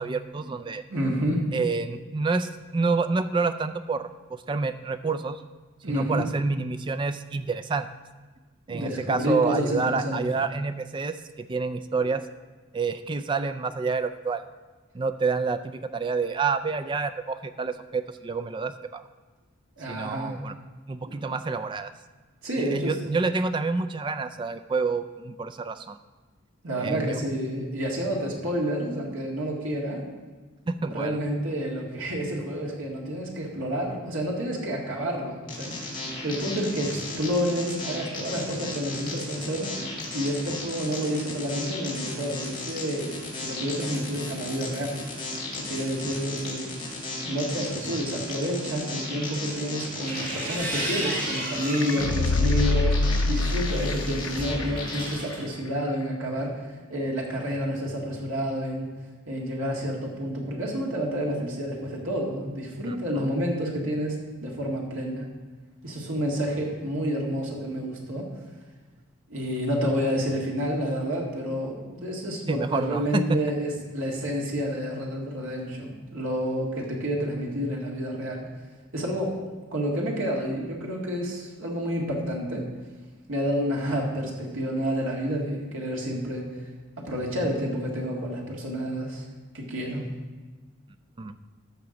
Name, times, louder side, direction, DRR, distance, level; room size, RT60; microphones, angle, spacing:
voice 1, 0.0-0.8 1.5-5.4 5.9-7.9 8.7-12.2 12.7-14.4 14.9-19.0 19.9-20.5 20.9-21.9 22.6-26.0 26.8-27.2 30.7-31.2 62.9-63.3 72.5-73.6 91.2-91.4, right 4 dB, 25° right, 11 dB, 0.3 m, -28 dB
voice 2, 0.9-1.5 5.8-6.3 8.7-10.4 19.8-20.4 21.1-21.2 22.4-22.9 26.6-30.0 30.9-45.0 45.6-46.7 47.2-58.9 59.3-65.3 65.8-68.3 69.3-78.5 78.9-79.4 79.7-82.7 83.3-86.5 87.0-89.2 89.5-90.1, equal, 75° right, -2 dB, 2.0 m, -29 dB
sound 1, 35.5-55.2, left 2 dB, 25° left, 2.5 m, -35 dB
sound 2, 49.8-52.1 52.6-55.4, right 1 dB, 40° right, 2.2 m, -34 dB
sound 3, 51.7-54.6 55.0-55.1, left 3 dB, 85° left, 0.5 m, -25 dB
13.5 x 5.9 x 3.9 m, 1.3 s
head